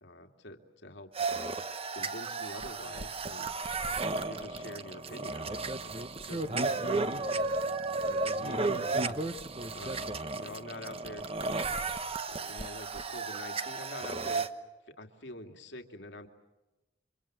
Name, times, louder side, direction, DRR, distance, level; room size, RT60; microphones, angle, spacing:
voice 1, 0.0-1.1 1.9-3.5 4.2-6.0 6.3-7.5 8.0-9.4 9.7-10.0 10.3-11.2 12.3-14.5 14.9-16.3, left 1 dB, 80° left, 5 dB, 2.6 m, -46 dB
sound 1, 1.1-14.5, right 3 dB, 35° right, 1.1 m, -33 dB
29.5 x 26.0 x 7.6 m, 1.0 s
head